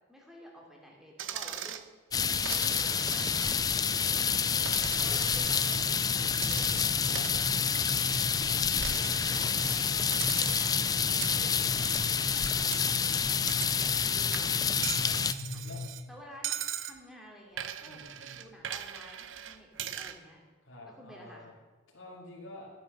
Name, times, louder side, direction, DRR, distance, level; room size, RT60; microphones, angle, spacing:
voice 1, 0.1-1.8 2.5-3.6 5.0-7.3 8.3-10.7 11.3-14.7 15.0-15.6 16.1-18.0 18.3-20.4 20.9-21.4, equal, ahead, -1 dB, 2.7 m, -52 dB
Coin (dropping), 1.2-1.9 2.5-3.8 4.1-5.8 6.4-8.4 8.8-9.9 10.1-10.8 11.2-14.1 14.3-16.0 16.4-17.0 17.6-20.2, right 10 dB, 75° right, 0.7 m, -40 dB
sound 1, 2.1-15.3, left 7 dB, 20° left, 0.4 m, -28 dB
voice 2, 3.9-5.3 7.1-7.2 9.9-10.9 15.0-15.2 15.6-15.8 17.8-18.4 20.6-21.5 21.9-22.7, left 1 dB, 75° left, -5 dB, 3.0 m, -49 dB
sound 2, 5.0-15.9, left 1 dB, 60° right, 1.6 m, -40 dB
13.5 x 9.6 x 6.8 m, 1.3 s
head